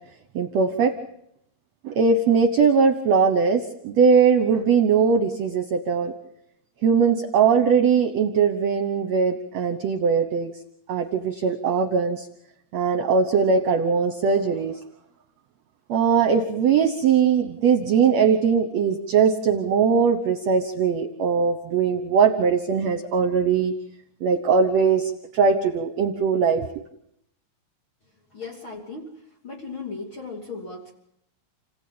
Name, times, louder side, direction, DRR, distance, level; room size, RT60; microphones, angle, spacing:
voice 1, 0.4-0.9 1.8-6.1 6.8-10.5 10.9-12.3 12.7-14.8 15.9-23.7 24.2-26.7, right 6 dB, 65° right, 8 dB, 2.0 m, -20 dB
voice 2, 28.3-30.9, left 4 dB, 40° left, 0 dB, 3.4 m, -37 dB
30.0 x 17.0 x 8.7 m, 0.79 s
omnidirectional pair, 3.9 m